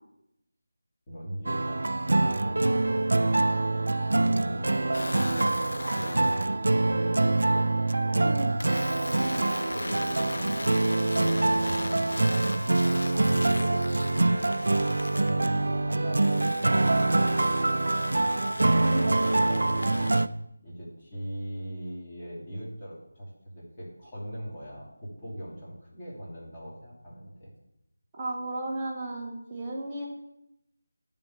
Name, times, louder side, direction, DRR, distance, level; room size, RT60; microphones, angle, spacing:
voice 1, 1.1-3.2 4.1-7.7 9.7-12.7 13.0-18.4 19.3-20.1 20.6-27.5, equal, 25° left, -6 dB, 2.7 m, -40 dB
sound 1, 1.5-20.3, right 2 dB, 65° right, 0.4 m, -25 dB
sound 2, 4.9-6.5 8.6-15.4 16.2-20.2, left 2 dB, 60° left, 0.5 m, -39 dB
voice 2, 8.2-8.5 18.8-19.2 28.2-30.1, right 2 dB, 20° right, -2 dB, 1.4 m, -34 dB
9.7 x 3.8 x 7.1 m, 0.85 s
figure-of-eight pair, 170°, 0 cm